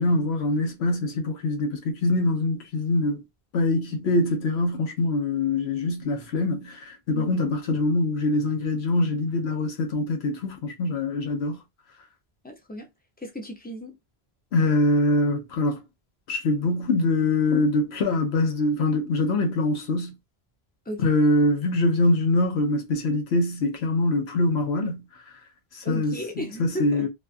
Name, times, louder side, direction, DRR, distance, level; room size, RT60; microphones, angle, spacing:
voice 1, 0.0-3.2 3.5-11.6 14.5-15.8 16.3-20.1 21.0-25.0 25.7-27.1, left 2 dB, 85° left, 1.0 m, -24 dB
voice 2, 12.4-12.9 13.2-14.0 20.9-21.0 25.8-27.1, equal, 10° left, 0.5 m, -35 dB
2.7 x 2.3 x 2.5 m
omnidirectional pair, 1.0 m